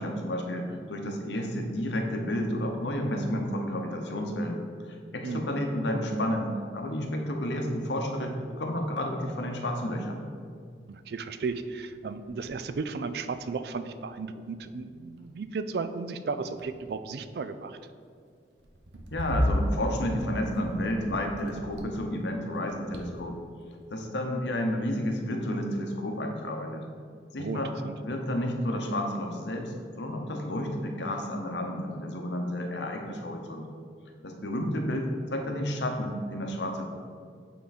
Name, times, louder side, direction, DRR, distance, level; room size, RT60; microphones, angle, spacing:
voice 1, 0.0-10.2 19.1-23.4 23.9-26.9 27.3-27.7 28.0-33.7 34.2-36.8, left 1 dB, 85° left, 3 dB, 0.9 m, -31 dB
voice 2, 10.9-17.8 27.4-27.9, right 4 dB, 60° right, 11 dB, 0.4 m, -34 dB
sound 1, 10.9-11.0 11.4-11.7 12.0-13.7 14.5-14.9 15.2-15.4 16.2-17.2 18.6-22.2 22.5-23.5, equal, 80° right, 0.7 m, -34 dB
8.4 x 3.8 x 4.1 m, 2.2 s
head